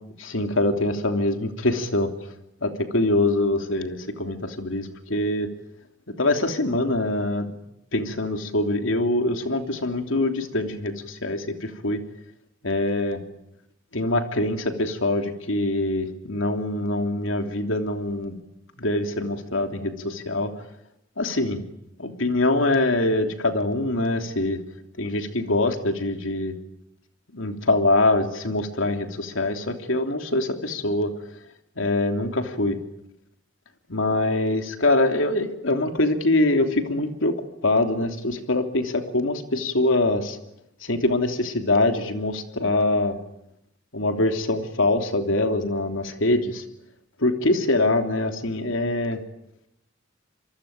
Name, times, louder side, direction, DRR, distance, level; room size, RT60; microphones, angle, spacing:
voice 1, 0.2-2.1 2.6-5.5 6.2-7.5 7.9-12.0 12.6-13.2 13.9-18.4 18.8-20.5 21.2-21.6 22.0-24.6 25.0-26.5 27.3-31.1 31.8-32.8 33.9-40.4 40.8-43.2 43.9-46.6 47.2-49.2, left 2 dB, 85° left, 5 dB, 3.2 m, -24 dB
27.0 x 23.5 x 8.9 m, 0.82 s
head